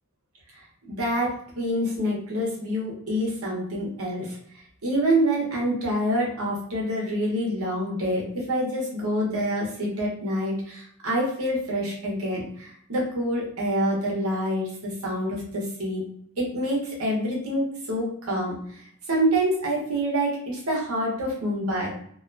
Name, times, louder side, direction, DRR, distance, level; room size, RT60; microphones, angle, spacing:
voice 1, 0.9-4.4 4.8-16.0 16.4-18.6 19.1-21.9, equal, 90° right, -3 dB, 1.0 m, -26 dB
2.6 x 2.2 x 2.6 m, 0.65 s
head